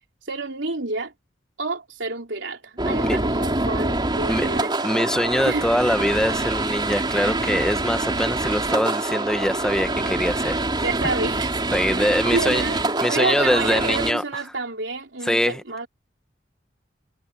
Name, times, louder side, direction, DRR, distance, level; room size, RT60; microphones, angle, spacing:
voice 1, 0.3-1.1 1.6-4.7 5.4-5.7 10.8-12.8 13.1-15.9, right 3 dB, 85° right, 3.3 m, -29 dB
sound 1, 2.8-14.1, right 2 dB, 25° right, 3.7 m, -25 dB
voice 2, 4.8-10.6 11.7-12.6 13.0-14.2 15.2-15.6, equal, 5° left, 1.1 m, -23 dB
head